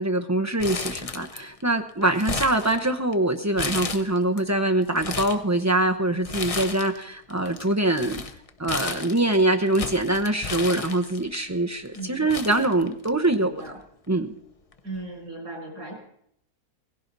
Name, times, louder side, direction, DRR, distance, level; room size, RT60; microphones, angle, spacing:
voice 1, 0.0-8.2 8.6-13.5 14.1-14.3, right 1 dB, 20° right, 4 dB, 0.5 m, -24 dB
Crumpling crinkling, 0.6-1.6 1.9-3.1 3.6-4.4 4.8-5.4 6.2-7.0 7.3-11.4 11.9-12.0 12.3-13.3 13.7-13.8 14.7-15.0, left 4 dB, 35° left, 0.6 m, -33 dB
voice 2, 11.9-12.4 13.4-13.7 14.8-15.9, right 2 dB, 90° right, -1 dB, 6.7 m, -37 dB
17.5 x 16.0 x 4.0 m, 0.69 s
omnidirectional pair, 1.6 m